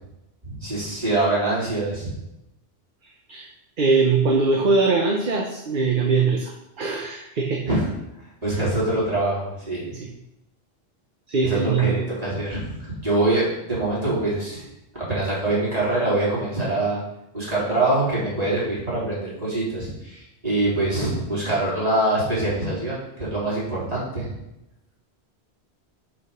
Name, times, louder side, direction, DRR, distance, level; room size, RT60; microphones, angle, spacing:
voice 1, 0.4-2.1 7.7-7.8 8.4-9.9 11.4-14.6 14.9-17.0 17.3-24.3, right 2 dB, 35° right, -8 dB, 3.5 m, -24 dB
voice 2, 3.8-7.7 9.9-10.1 11.3-12.0, right 4 dB, 55° right, 1 dB, 1.0 m, -22 dB
6.0 x 5.6 x 5.5 m, 0.87 s
omnidirectional pair, 1.1 m